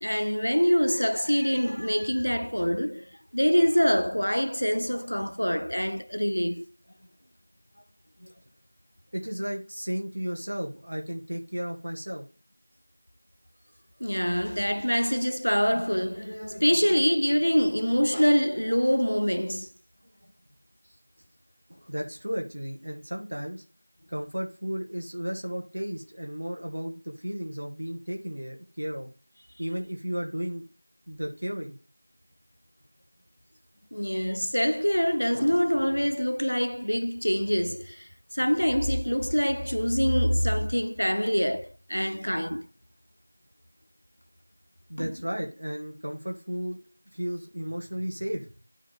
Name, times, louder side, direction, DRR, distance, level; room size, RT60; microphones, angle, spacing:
voice 1, 0.0-6.7 8.2-8.3 14.0-19.7 33.9-42.7 45.0-45.1, equal, 65° left, 0.3 m, -25 dB
voice 2, 9.1-12.2 21.9-23.6 24.1-29.1 29.6-30.6 31.1-31.7 44.9-46.8 47.1-48.5, equal, 25° right, 0.9 m, -34 dB
9.7 x 3.5 x 3.9 m
figure-of-eight pair, 180°, 0 cm